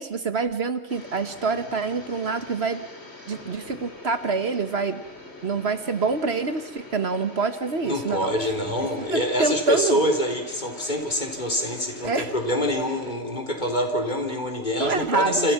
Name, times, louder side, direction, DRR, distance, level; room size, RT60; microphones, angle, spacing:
voice 1, 0.0-2.9 3.3-5.0 5.4-8.3 9.0-10.0 12.0-12.3 14.8-15.5, right 4 dB, 60° right, 11 dB, 1.5 m, -26 dB
sound 1, 0.9-13.1, left 2 dB, 60° left, 4.1 m, -43 dB
voice 2, 7.8-15.5, equal, 40° left, 4 dB, 4.1 m, -25 dB
28.5 x 27.5 x 5.9 m, 1.0 s
omnidirectional pair, 1.3 m